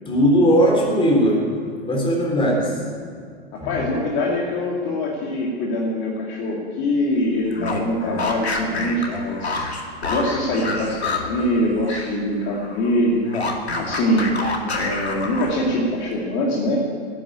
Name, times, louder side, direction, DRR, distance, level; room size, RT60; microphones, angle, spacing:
voice 1, 0.1-1.5 1.9-2.8 3.6-3.8, equal, 15° left, 0 dB, 3.6 m, -18 dB
voice 2, 3.5-9.7 10.0-13.2 13.5-13.6 13.8-14.3 14.6-16.8, left 1 dB, 40° left, -2 dB, 2.6 m, -23 dB
sound 1, 7.5-12.2 12.5-15.8, left 3 dB, 85° left, 2.2 m, -28 dB
12.0 x 8.9 x 8.9 m, 2.1 s
hypercardioid pair, 105°, 31 cm